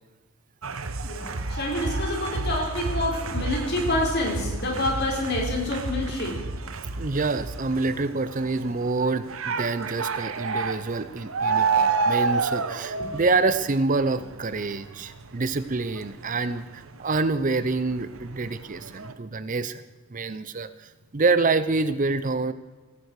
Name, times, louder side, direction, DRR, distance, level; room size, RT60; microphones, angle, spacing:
sound 1, 0.6-17.4 17.7-19.1, right 4 dB, 70° right, 1.0 m, -30 dB
voice 1, 1.1-6.4, left 1 dB, 50° left, -1 dB, 5.0 m, -27 dB
voice 2, 7.0-19.8 20.1-20.7 21.1-22.5, right 3 dB, 35° right, 13 dB, 0.6 m, -26 dB
17.5 x 16.0 x 4.8 m, 1.3 s
head